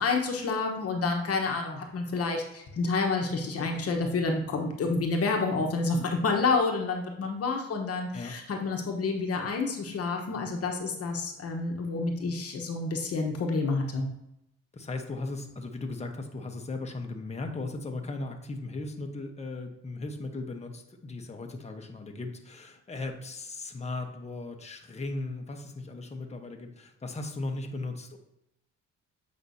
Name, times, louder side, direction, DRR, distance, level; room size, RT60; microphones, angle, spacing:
voice 1, 0.0-14.1, left 3 dB, 50° left, 2 dB, 1.1 m, -29 dB
voice 2, 14.7-28.2, left 2 dB, 20° left, 3 dB, 1.0 m, -37 dB
8.0 x 5.3 x 2.7 m, 0.83 s
cardioid pair, 90°, 30 cm